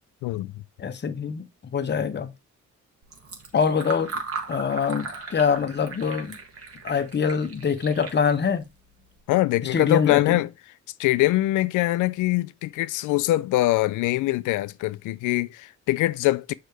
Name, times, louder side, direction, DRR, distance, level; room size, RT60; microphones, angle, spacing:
voice 1, 0.2-0.6 9.3-10.5 11.0-16.5, left 17 dB, 85° left, 0.5 m, -23 dB
voice 2, 0.8-1.5 1.7-2.3 3.5-4.2 4.5-6.4 6.8-8.7 9.6-10.4, left 6 dB, 35° left, 1.0 m, -24 dB
Fill (with liquid), 3.0-9.2, right 4 dB, 50° right, 1.8 m, -38 dB
6.5 x 4.7 x 3.3 m
cardioid pair, 90°, 30 cm